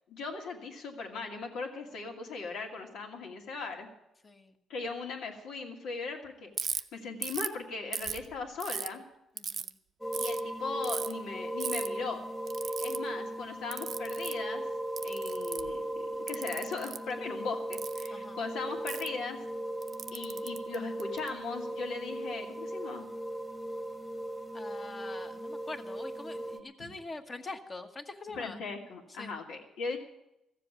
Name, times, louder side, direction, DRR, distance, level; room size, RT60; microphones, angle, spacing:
voice 1, 0.1-3.9 4.7-9.0 10.1-12.2 12.6-14.6 15.0-19.4 20.1-23.1 26.5-26.6 28.3-30.0, left 4 dB, 85° left, 2 dB, 2.5 m, -39 dB
voice 2, 4.2-4.5 9.4-9.8 18.1-18.4 24.5-28.6 29.2-29.3, left 3 dB, 30° left, 5 dB, 1.3 m, -44 dB
Ratchet pawl, 6.6-6.8 7.2-7.5 7.9-8.9 9.4-9.7 10.1-10.4 10.8-11.1 11.6-11.9 12.5-13.0 13.7-14.4 15.0-15.7 16.3-17.0 17.7-18.1 18.9-19.1 19.8-21.3, right 7 dB, 55° right, 0.6 m, -36 dB
sound 1, 10.0-26.6, right 1 dB, 5° right, 1.2 m, -37 dB
15.0 x 7.7 x 9.9 m, 0.87 s
cardioid pair, 115°, 0 cm